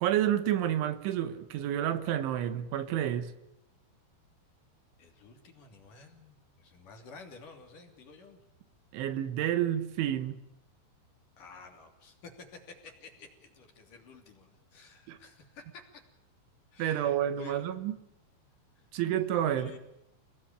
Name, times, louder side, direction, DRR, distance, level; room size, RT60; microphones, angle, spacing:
voice 1, 0.0-3.3 8.9-10.4 15.1-15.2 16.8-17.9 18.9-19.7, right 11 dB, 75° right, 3.7 m, -29 dB
voice 2, 5.0-8.4 11.4-16.0 16.7-17.8 18.8-18.9 19.6-19.8, left 4 dB, 45° left, 4.1 m, -51 dB
29.0 x 19.0 x 8.9 m
omnidirectional pair, 5.6 m